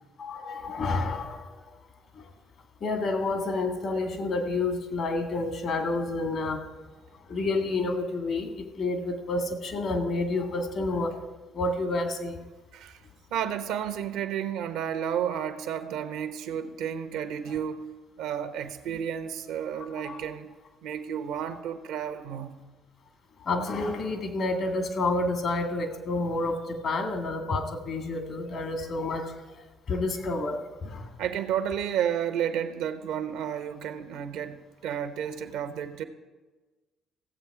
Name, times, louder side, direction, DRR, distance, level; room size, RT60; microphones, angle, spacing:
voice 1, 0.2-1.8 2.2-2.3 2.8-6.6 7.3-11.1 11.5-12.4 18.9-19.0 20.0-20.2 23.4-31.1, left 2 dB, 60° left, 5 dB, 2.0 m, -29 dB
voice 2, 13.3-17.9 18.2-20.5 20.8-22.5 31.2-36.0, right 9 dB, 75° right, 9 dB, 0.9 m, -31 dB
15.5 x 7.7 x 4.9 m, 1.2 s
hypercardioid pair, 55°, 0 cm